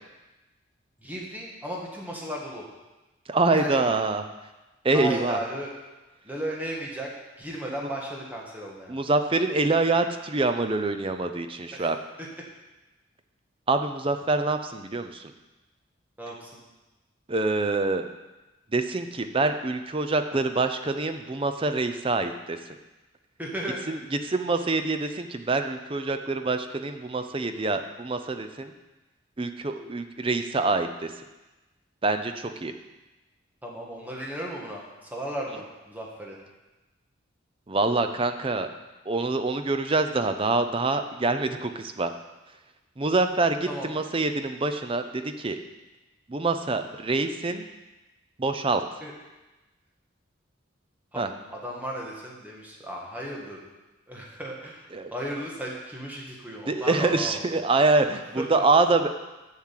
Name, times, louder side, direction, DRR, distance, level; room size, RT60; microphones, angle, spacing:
voice 1, 1.0-2.6 3.5-3.9 4.9-5.7 6.2-9.0 11.7-11.9 12.2-12.3 16.2-16.6 23.4-23.8 33.6-36.4 43.7-43.9 49.0-49.1 51.1-53.6 54.1-57.5 58.4-58.6, right 1 dB, 10° right, -3 dB, 1.6 m, -35 dB
voice 2, 3.3-4.2 4.8-5.4 8.9-12.0 13.7-15.2 17.3-18.1 18.7-22.6 23.9-24.0 24.2-28.7 29.4-31.1 32.0-32.7 37.7-38.7 39.1-42.1 43.0-43.6 43.8-45.6 46.3-47.6 48.4-48.8 51.2-51.3 54.9-55.1 56.7-59.1, right 3 dB, 25° right, 8 dB, 0.5 m, -25 dB
7.2 x 6.4 x 7.5 m, 1.1 s
head